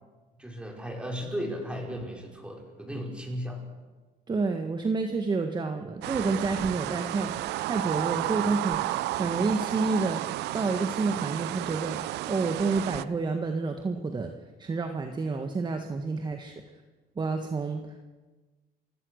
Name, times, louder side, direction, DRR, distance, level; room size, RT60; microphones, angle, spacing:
voice 1, 0.4-3.6, equal, 5° right, 0 dB, 5.6 m, -35 dB
voice 2, 4.3-7.3 7.6-8.8 9.2-14.3 14.6-16.6 17.1-18.0, right 3 dB, 25° right, 5 dB, 1.6 m, -29 dB
sound 1, 6.0-13.0, right 16 dB, 80° right, 0.6 m, -32 dB
29.0 x 16.5 x 6.5 m, 1.3 s
cardioid pair, 110°, 17 cm